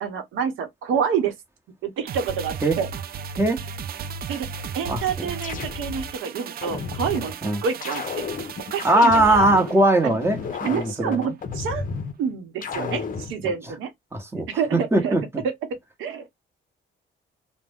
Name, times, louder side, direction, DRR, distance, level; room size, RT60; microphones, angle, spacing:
voice 1, 0.0-1.3 1.8-2.9 4.3-4.5 4.7-7.4 7.6-8.3 8.7-9.5 10.0-10.2 10.6-11.9 12.2-13.9 14.5-15.2 16.0-16.3, right 7 dB, 85° right, 0.9 m, -27 dB
sound 1, 2.1-10.6 11.0-11.1, right 6 dB, 50° right, 0.4 m, -36 dB
sound 2, 4.8-6.1 6.6-7.3 7.8-9.7 10.2-12.1 12.6-13.3, left 5 dB, 45° left, 0.6 m, -32 dB
voice 2, 4.9-5.3 7.4-7.6 8.8-11.3 12.7-13.0 13.4-13.5 14.1-15.4, right 1 dB, 10° right, 1.0 m, -21 dB
2.4 x 2.1 x 3.4 m
cardioid pair, 90°, 20 cm